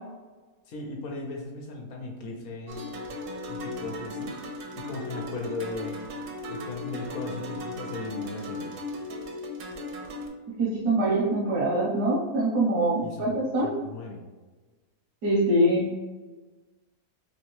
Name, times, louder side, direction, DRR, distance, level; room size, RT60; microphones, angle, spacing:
voice 1, 0.7-2.9 3.5-4.4 4.7-6.1 6.5-8.7 13.0-13.4 13.6-14.2, left 3 dB, 70° left, 1 dB, 1.2 m, -37 dB
sound 1, 2.7-10.3, left 1 dB, 65° right, 0.9 m, -37 dB
voice 2, 10.6-13.7 15.2-15.9, right 1 dB, 85° right, -6 dB, 1.4 m, -24 dB
3.4 x 3.1 x 3.0 m, 1.3 s
omnidirectional pair, 1.7 m